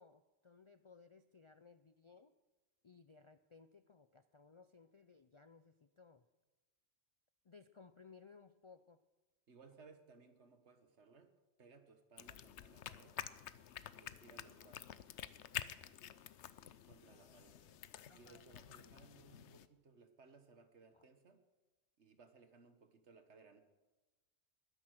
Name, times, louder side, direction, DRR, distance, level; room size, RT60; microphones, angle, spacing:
voice 1, 0.0-2.3 2.8-6.3 7.4-9.0 17.0-17.8 18.1-18.5 20.9-21.0, left 5 dB, 45° left, 11 dB, 0.4 m, -62 dB
voice 2, 9.5-11.3 11.6-13.2 14.0-14.8 16.9-17.6 18.1-21.4 22.0-23.6, right 4 dB, 75° right, 8 dB, 1.7 m, -63 dB
sound 1, 12.2-19.7, left 10 dB, 75° left, 1.0 m, -50 dB
21.0 x 9.9 x 6.4 m, 1.2 s
omnidirectional pair, 1.2 m